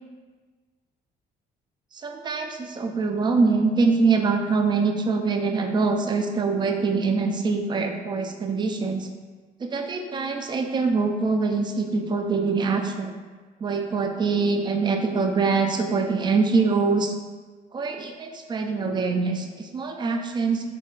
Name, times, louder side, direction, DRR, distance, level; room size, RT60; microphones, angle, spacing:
voice 1, 1.9-9.1 9.6-13.2 13.6-17.1 17.7-20.7, right 4 dB, 25° right, 4 dB, 0.4 m, -24 dB
5.2 x 3.1 x 2.4 m, 1.4 s
cardioid pair, 110°, 17 cm